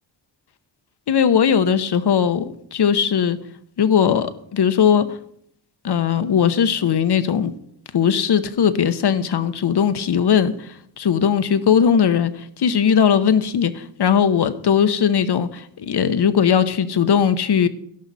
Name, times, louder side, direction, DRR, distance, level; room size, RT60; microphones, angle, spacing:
voice 1, 1.1-3.4 3.8-5.2 5.8-7.5 7.9-17.7, left 7 dB, 55° left, 1.0 m, -19 dB
12.0 x 11.5 x 4.2 m
cardioid pair, 70°, 47 cm